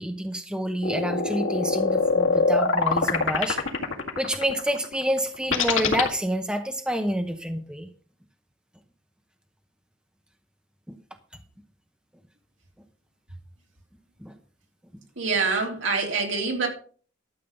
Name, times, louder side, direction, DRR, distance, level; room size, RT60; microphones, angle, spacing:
voice 1, 0.0-3.6 4.2-7.9 14.2-14.3, equal, 5° right, 0.8 m, -28 dB
sound 1, 0.8-6.1, left 4 dB, 80° left, 2.0 m, -23 dB
voice 2, 15.2-16.7, right 4 dB, 70° right, 3.3 m, -25 dB
12.5 x 7.4 x 5.2 m
head